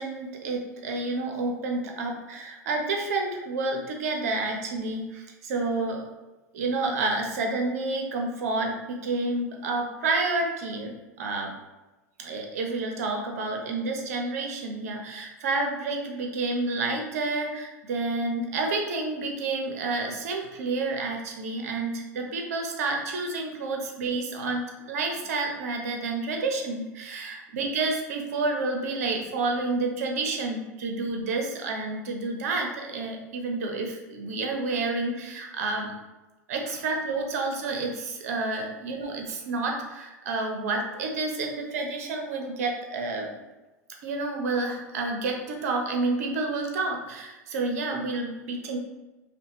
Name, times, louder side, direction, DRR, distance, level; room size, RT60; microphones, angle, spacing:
voice 1, 0.0-6.0 6.5-11.5 12.2-35.9 36.5-43.4 44.0-48.8, right 3 dB, 60° right, 2 dB, 0.8 m, -29 dB
5.2 x 2.2 x 2.9 m, 1.1 s
figure-of-eight pair, 85°, 9 cm